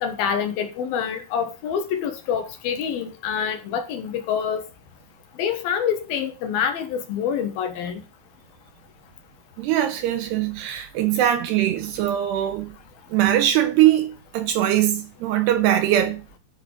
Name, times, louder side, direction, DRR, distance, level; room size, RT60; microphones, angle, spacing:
voice 1, 0.0-4.6 5.4-8.0, left 7 dB, 65° left, 2.7 m, -26 dB
voice 2, 9.6-12.8 13.1-16.4, right 12 dB, 80° right, 2.7 m, -21 dB
10.5 x 5.0 x 6.2 m
omnidirectional pair, 5.2 m